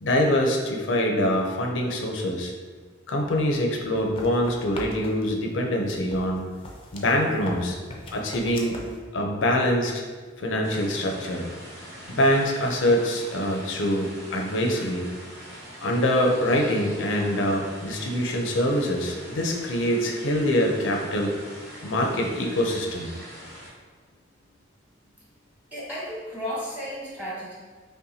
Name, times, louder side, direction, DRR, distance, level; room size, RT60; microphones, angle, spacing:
voice 1, 0.0-2.5 3.1-6.4 6.9-7.8 8.1-8.8 9.1-10.0 10.4-11.5 12.1-15.1 15.8-21.3 21.8-23.1, left 1 dB, 80° left, 2 dB, 0.6 m, -24 dB
sound 1, 3.9-5.4 5.9-9.0, left 1 dB, 30° left, 0.5 m, -40 dB
sound 2, 10.6-23.7, equal, 85° right, 1.4 m, -43 dB
voice 2, 25.7-27.5, equal, 10° right, -8 dB, 1.0 m, -33 dB
5.5 x 2.2 x 2.7 m, 1.5 s
head